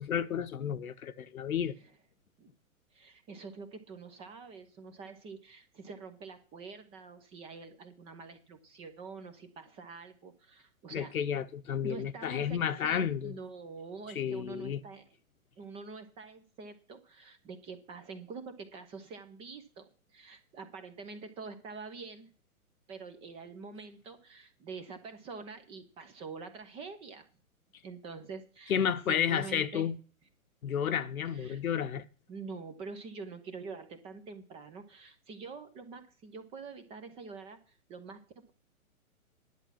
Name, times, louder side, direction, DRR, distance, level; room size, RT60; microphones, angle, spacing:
voice 1, 0.0-1.7 10.9-13.3 14.1-14.8 28.7-30.0 30.6-32.0, left 8 dB, 75° left, 1.0 m, -31 dB
voice 2, 2.9-11.1 11.8-15.0 15.6-22.3 22.9-27.3 27.8-28.8 29.1-29.9 31.3-31.6 32.3-38.2, right 4 dB, 15° right, 0.6 m, -46 dB
10.5 x 7.1 x 5.8 m
hypercardioid pair, 135°, 43 cm